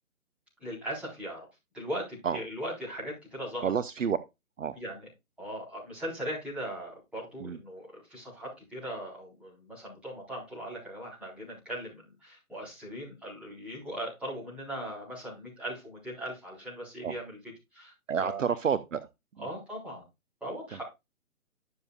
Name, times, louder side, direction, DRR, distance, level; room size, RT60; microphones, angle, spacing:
voice 1, 0.6-1.4 1.7-3.7 4.7-5.0 5.4-17.4 17.7-17.9 18.2-18.5 19.4-20.0 20.4-20.8, right 1 dB, 5° right, 4.2 m, -39 dB
voice 2, 3.6-4.2 4.6-4.8 7.4-7.6 17.0-17.2 18.1-19.5 20.7-20.8, right 7 dB, 60° right, 0.7 m, -30 dB
11.0 x 7.1 x 2.4 m
figure-of-eight pair, 150°, 43 cm